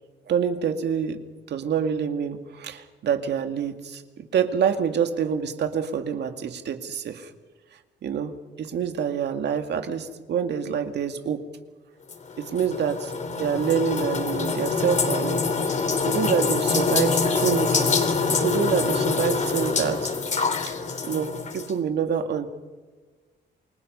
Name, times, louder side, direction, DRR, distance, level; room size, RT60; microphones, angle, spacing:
voice 1, 0.3-1.2 1.5-7.3 8.0-11.4 12.4-13.1 13.4-15.4 16.0-17.9 18.3-20.1 20.5-20.7 21.0-22.5, right 7 dB, 65° right, 6 dB, 2.2 m, -26 dB
sound 1, 12.1-21.7, left 4 dB, 40° left, 3.4 m, -25 dB
28.5 x 21.0 x 5.6 m, 1.3 s
cardioid pair, 110°, 19 cm